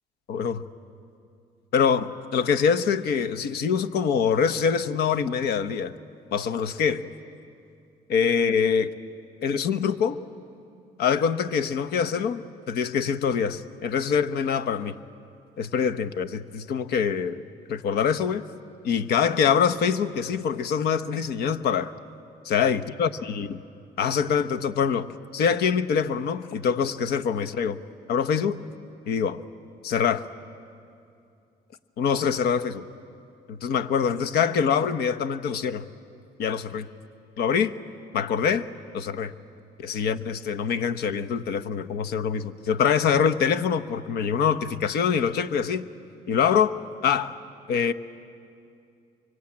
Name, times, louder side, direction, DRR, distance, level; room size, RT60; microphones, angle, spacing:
voice 1, 0.3-0.6 1.7-5.9 6.3-7.1 8.1-8.9 9.4-10.2 11.0-14.9 15.6-17.4 17.7-18.4 18.8-21.9 22.4-23.5 24.0-27.8 28.1-28.6 29.1-29.4 29.8-30.2 32.0-32.8 33.5-35.9 36.4-36.9 37.4-37.7 38.1-38.7 38.9-39.3 39.8-45.9 46.3-46.7 47.0-47.3 47.7-47.9, left 7 dB, 70° left, 11 dB, 1.0 m, -24 dB
25.0 x 23.5 x 8.7 m, 2.5 s
cardioid pair, 110°, 17 cm